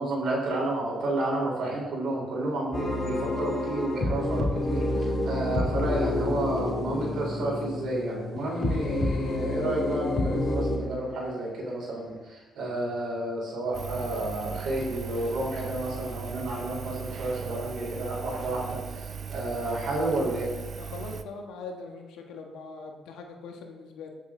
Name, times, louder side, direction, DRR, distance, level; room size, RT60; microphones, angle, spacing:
voice 1, 0.0-20.5, right 2 dB, 70° right, -2 dB, 4.0 m, -31 dB
sound 1, 2.7-10.8, left 2 dB, 40° left, 2.3 m, -29 dB
sound 2, 8.4-11.0, left 6 dB, 55° left, 0.6 m, -38 dB
Engine, 13.7-21.2, right 7 dB, 50° right, 0.7 m, -38 dB
voice 2, 20.8-24.1, left 4 dB, 85° left, 2 dB, 1.4 m, -41 dB
15.0 x 7.3 x 3.8 m, 1.3 s
cardioid pair, 90°, 0 cm